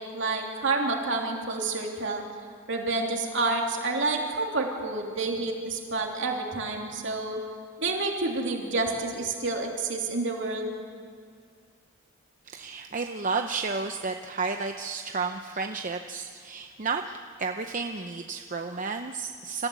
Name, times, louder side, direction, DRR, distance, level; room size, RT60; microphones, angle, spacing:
voice 1, 0.0-2.2 2.7-7.4 7.8-10.7, right 3 dB, 60° right, 1 dB, 3.1 m, -29 dB
voice 2, 12.4-19.7, right 4 dB, 35° right, 6 dB, 0.7 m, -32 dB
27.0 x 15.0 x 8.3 m, 2.1 s
head